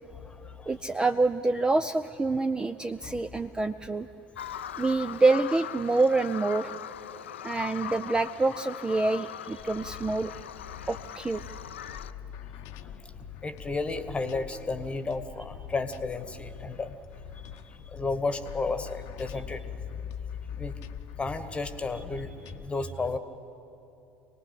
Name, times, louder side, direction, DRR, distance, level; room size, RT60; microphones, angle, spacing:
voice 1, 0.1-0.7 3.0-3.1 13.4-16.9 17.9-19.6 20.6-20.7 21.2-23.2, left 3 dB, 15° left, 11 dB, 1.4 m, -33 dB
voice 2, 0.7-4.1 4.8-6.7 7.4-10.3 10.9-11.4, right 3 dB, 10° right, 12 dB, 0.5 m, -26 dB
Bird vocalization bird call bird song, 4.4-12.1, left 10 dB, 70° left, 0.5 m, -40 dB
sound 1, 9.6-22.7, left 9 dB, 50° left, 0.8 m, -45 dB
26.0 x 19.0 x 8.3 m, 2.8 s
figure-of-eight pair, 65°, 7 cm